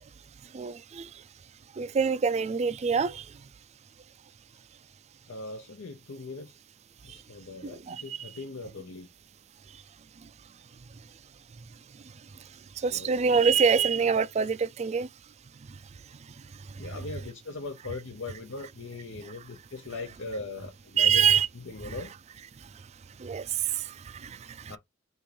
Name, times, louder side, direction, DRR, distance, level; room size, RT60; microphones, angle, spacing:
voice 1, 0.5-1.1 1.8-3.3 7.1-7.2 7.6-8.3 12.8-15.1 21.0-21.5 21.8-22.0 23.2-24.8, right 6 dB, 35° right, 0.4 m, -26 dB
voice 2, 5.3-6.5 7.0-9.1 12.9-13.1 16.8-21.2 21.6-22.1 24.7-24.8, left 3 dB, 80° left, 0.7 m, -40 dB
5.4 x 2.5 x 3.3 m
head